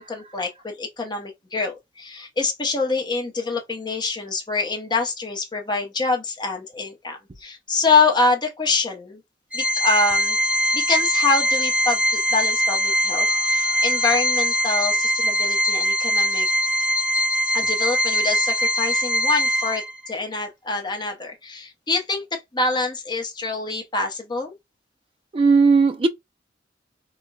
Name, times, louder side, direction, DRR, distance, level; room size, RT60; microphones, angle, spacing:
voice 1, 0.0-9.2 9.5-10.4 10.7-16.5 17.5-24.5, left 3 dB, 25° left, 0.7 m, -25 dB
Organ, 9.5-20.1, equal, 10° right, 0.7 m, -22 dB
voice 2, 25.3-26.1, right 4 dB, 30° right, 0.4 m, -17 dB
3.9 x 2.1 x 2.2 m
head